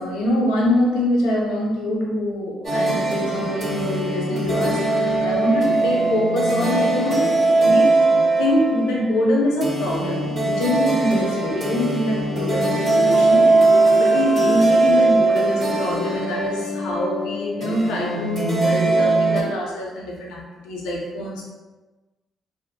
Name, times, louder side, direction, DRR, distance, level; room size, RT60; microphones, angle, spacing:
voice 1, 0.0-7.4 7.6-8.0 8.4-13.6 14.0-21.4, left 1 dB, 80° left, -2 dB, 0.5 m, -24 dB
sound 1, 2.6-19.4, right 2 dB, 60° right, 1.1 m, -20 dB
2.6 x 2.0 x 2.7 m, 1.2 s
supercardioid pair, 55°, 0 cm